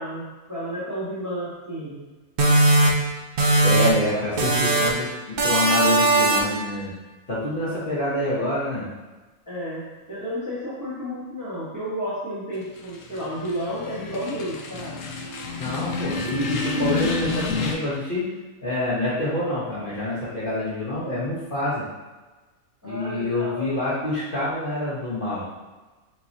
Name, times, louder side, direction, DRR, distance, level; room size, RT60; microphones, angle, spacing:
voice 1, 0.0-2.1 9.5-15.1 22.8-23.8, equal, 15° right, -8 dB, 1.0 m, -32 dB
sound 1, 2.4-4.1 4.4-5.1 5.4-6.6, right 2 dB, 55° right, 0.6 m, -19 dB
voice 2, 3.6-6.9 7.3-8.9 15.5-18.3 18.6-21.8 22.8-25.4, left 1 dB, 40° left, -9 dB, 1.1 m, -26 dB
sound 2, 12.8-17.8, left 4 dB, 70° left, 0.9 m, -29 dB
5.9 x 3.1 x 2.7 m, 1.2 s
omnidirectional pair, 1.5 m